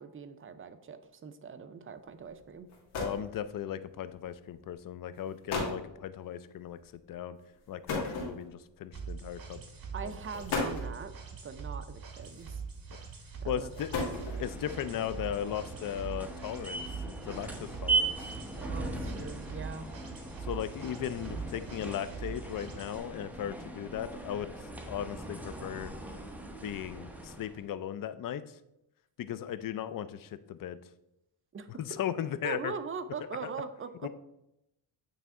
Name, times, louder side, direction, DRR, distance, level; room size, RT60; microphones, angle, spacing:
voice 1, 0.0-2.7 9.9-11.1 11.4-12.6 13.4-13.7 18.6-19.9 31.5-31.7 32.4-34.1, right 5 dB, 30° right, 10 dB, 0.5 m, -41 dB
sound 1, 2.4-2.5 2.7-3.3 4.3-4.5 5.2-5.3 5.5-5.9 7.9-8.7 9.7-9.8 10.3-11.0 12.2-12.7 13.6-14.6, left 3 dB, 90° left, 1.9 m, -34 dB
voice 2, 3.0-6.8 7.1-7.4 7.7-9.6 10.3-10.4 13.5-13.9 14.4-18.2 20.5-24.5 24.9-25.9 26.6-28.6 29.2-30.8 31.7-32.7 34.0-34.1, left 10 dB, 45° left, 13 dB, 0.5 m, -37 dB
sound 2, 8.9-23.0, right 5 dB, 45° right, 1.3 m, -43 dB
sound 3, 14.1-27.6, right 3 dB, 5° right, 0.8 m, -39 dB
8.5 x 3.4 x 3.6 m, 0.85 s
cardioid pair, 95°, 47 cm